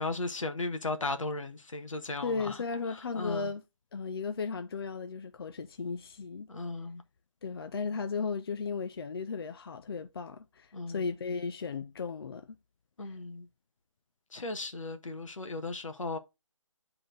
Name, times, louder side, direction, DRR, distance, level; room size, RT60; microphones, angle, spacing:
voice 1, 0.0-2.6 3.1-3.5 6.5-7.0 10.7-11.0 13.0-13.5 14.3-16.2, left 2 dB, 80° left, 1.4 m, -36 dB
voice 2, 2.2-3.6 3.9-6.5 7.4-12.5 13.0-13.2, left 5 dB, 50° left, 0.5 m, -35 dB
9.3 x 3.9 x 3.9 m
figure-of-eight pair, 160°, 16 cm